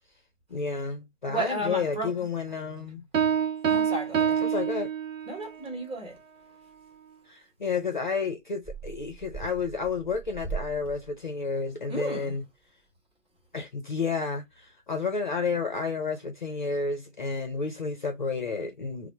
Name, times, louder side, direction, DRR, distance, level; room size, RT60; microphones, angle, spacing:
voice 1, 0.5-3.0 4.4-4.9 7.3-12.4 13.5-19.1, left 4 dB, 40° left, 0.6 m, -31 dB
voice 2, 1.3-2.1 3.7-4.4 5.3-6.1 11.9-12.3, right 1 dB, 15° right, 2.4 m, -33 dB
Piano, 3.1-5.5, right 8 dB, 85° right, 0.6 m, -26 dB
5.7 x 2.0 x 3.3 m
figure-of-eight pair, 155°, 38 cm